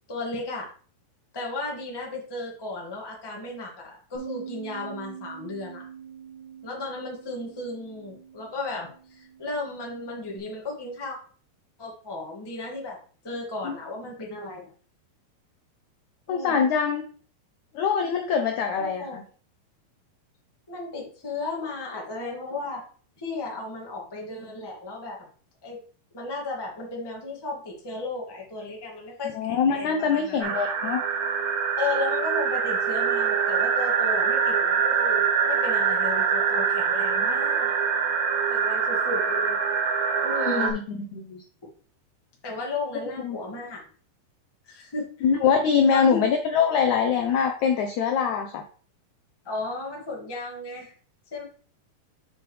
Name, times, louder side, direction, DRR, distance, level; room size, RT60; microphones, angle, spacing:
voice 1, 0.1-0.7 1.3-5.9 6.6-11.2 11.8-13.0 13.2-14.7 16.3-16.7 18.7-19.2 20.7-22.9 23.2-25.2 25.6-25.8 26.1-30.5 31.8-37.7 38.5-39.6 40.2-40.8 42.4-43.8 44.7-45.1 45.9-46.2 49.4-50.9 51.3-51.4, left 2 dB, 15° left, -2 dB, 0.7 m, -34 dB
Bass guitar, 4.1-10.4, right 8 dB, 25° right, 0.8 m, -44 dB
voice 2, 16.3-17.0 17.7-19.2 29.3-31.0 40.5-40.8 41.1-41.4 43.2-43.4 45.2-48.6, left 6 dB, 85° left, 4 dB, 1.6 m, -23 dB
sound 1, 30.4-40.7, right 6 dB, 75° right, 3.0 m, -24 dB
7.7 x 5.8 x 3.3 m, 0.42 s
omnidirectional pair, 4.5 m